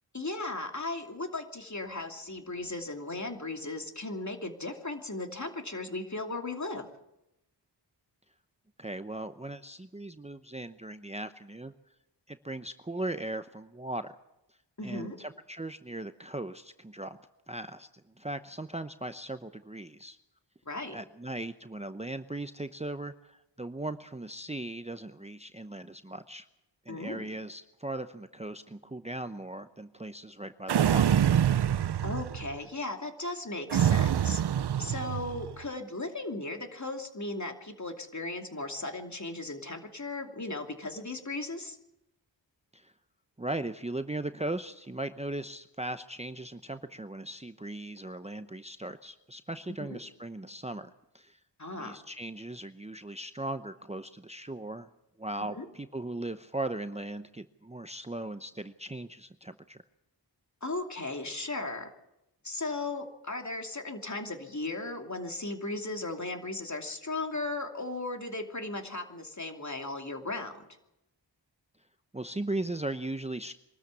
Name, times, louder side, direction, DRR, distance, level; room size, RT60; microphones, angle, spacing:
voice 1, 0.1-6.9 14.8-15.2 20.7-21.0 26.9-27.3 32.0-34.4 34.8-41.8 49.8-50.0 51.6-52.0 55.6-55.7 60.6-61.9 62.4-70.6, left 2 dB, 40° left, 4 dB, 2.8 m, -36 dB
voice 2, 8.8-11.7 12.3-14.1 14.8-17.2 17.5-17.9 18.2-20.2 20.9-26.5 26.9-31.0 42.7-42.9 43.4-51.4 51.8-54.9 55.2-59.8 72.1-73.6, right 2 dB, 15° right, 10 dB, 0.8 m, -38 dB
sound 1, 30.7-32.6 33.7-35.5, right 9 dB, 65° right, 0.6 m, -26 dB
23.5 x 13.0 x 8.4 m, 0.91 s
cardioid pair, 40°, 44 cm